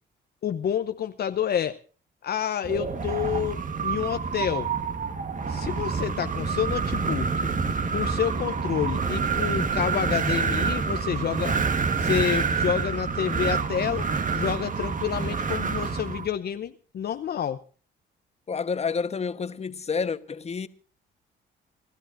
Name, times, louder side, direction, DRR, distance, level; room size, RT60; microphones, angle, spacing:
voice 1, 0.4-1.8 2.2-4.7 5.5-7.5 7.9-11.6 12.0-14.1 14.3-17.6, left 9 dB, 55° left, 0.7 m, -29 dB
Wind, 2.6-16.3, right 5 dB, 40° right, 1.4 m, -27 dB
voice 2, 18.5-20.7, left 5 dB, 35° left, 1.1 m, -29 dB
29.0 x 12.5 x 2.6 m
cardioid pair, 90°, 20 cm